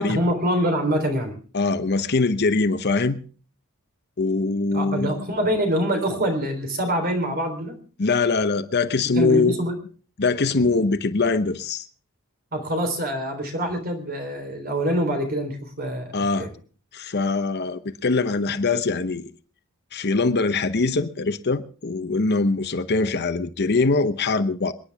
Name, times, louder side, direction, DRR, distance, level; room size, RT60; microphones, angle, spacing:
voice 1, 0.0-1.3 4.7-7.8 9.1-9.8 12.5-16.5, equal, 45° right, 3.6 m, -25 dB
voice 2, 1.5-3.2 4.2-5.3 8.0-9.6 10.2-11.8 16.1-16.5 16.9-19.3 19.9-24.7, left 3 dB, 55° left, 0.9 m, -22 dB
27.5 x 10.0 x 3.5 m
head